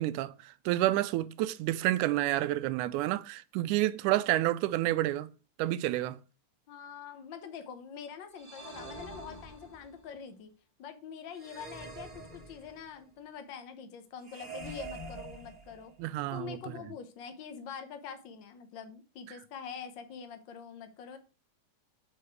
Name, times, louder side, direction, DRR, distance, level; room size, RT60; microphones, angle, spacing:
voice 1, 0.0-5.3 5.6-6.2 16.0-16.6 19.3-19.4, right 15 dB, 90° right, 2.0 m, -29 dB
voice 2, 6.7-10.5 10.8-15.9 16.3-21.2, left 7 dB, 75° left, 1.0 m, -45 dB
sound 1, 8.4-10.1 11.3-13.0 14.2-16.1, right 2 dB, 20° right, 1.4 m, -45 dB
8.2 x 4.8 x 4.5 m
omnidirectional pair, 3.5 m